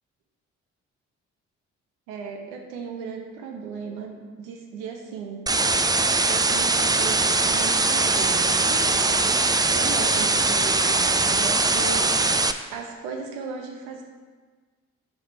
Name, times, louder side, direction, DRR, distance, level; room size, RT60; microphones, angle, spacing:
voice 1, 2.1-5.7 6.3-9.3 9.7-12.3 12.7-14.0, right 5 dB, 80° right, 3 dB, 0.9 m, -36 dB
sound 1, 5.5-12.5, right 3 dB, 10° right, 0.4 m, -21 dB
6.7 x 5.3 x 4.5 m, 1.5 s
hypercardioid pair, 40°, 38 cm